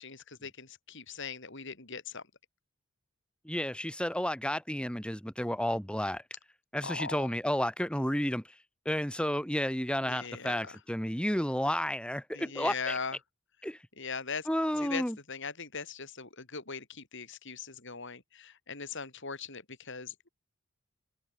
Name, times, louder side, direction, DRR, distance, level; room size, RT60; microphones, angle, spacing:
voice 1, 0.0-2.2 6.8-7.3 10.0-10.8 12.3-13.2 14.0-14.5 14.8-20.3, left 5 dB, 55° left, 4.2 m, -40 dB
voice 2, 3.4-6.2 6.7-8.4 8.8-13.0 13.6-13.8 14.5-15.2, equal, 5° left, 4.7 m, -31 dB
head